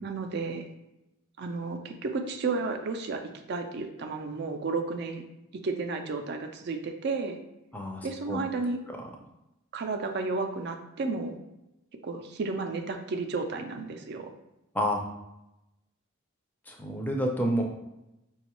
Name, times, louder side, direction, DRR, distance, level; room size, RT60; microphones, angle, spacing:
voice 1, 0.0-0.7 1.4-3.2 3.5-5.2 5.6-7.4 8.0-8.8 9.7-11.4 12.0-14.3, right 3 dB, 50° right, 5 dB, 0.4 m, -32 dB
voice 2, 7.7-8.4 14.7-15.0 16.7-17.6, equal, 10° left, 1 dB, 0.4 m, -29 dB
5.0 x 2.3 x 3.0 m, 0.91 s
head